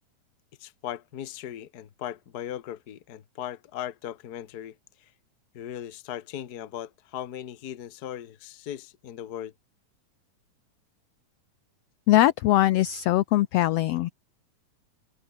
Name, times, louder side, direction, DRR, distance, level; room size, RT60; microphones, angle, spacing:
voice 1, 0.6-4.8 5.5-9.5, left 11 dB, 55° left, 1.1 m, -38 dB
voice 2, 12.1-14.1, left 15 dB, 80° left, 1.4 m, -21 dB
omnidirectional pair, 3.5 m